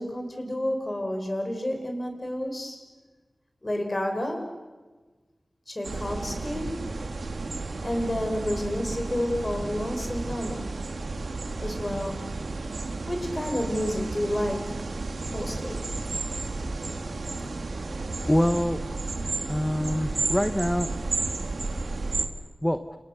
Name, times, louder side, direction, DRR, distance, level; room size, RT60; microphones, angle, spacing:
voice 1, 0.0-2.8 3.6-4.4 5.7-6.7 7.8-10.7 11.6-12.3 13.1-14.7 15.3-15.8, left 1 dB, 30° left, 4 dB, 6.0 m, -30 dB
sound 1, 5.8-22.3, right 3 dB, 80° right, 2.3 m, -32 dB
voice 2, 18.3-18.8 19.5-20.9 22.6-22.8, equal, 10° left, 8 dB, 1.1 m, -24 dB
29.5 x 28.5 x 6.9 m, 1.3 s
wide cardioid pair, 75°, 0 cm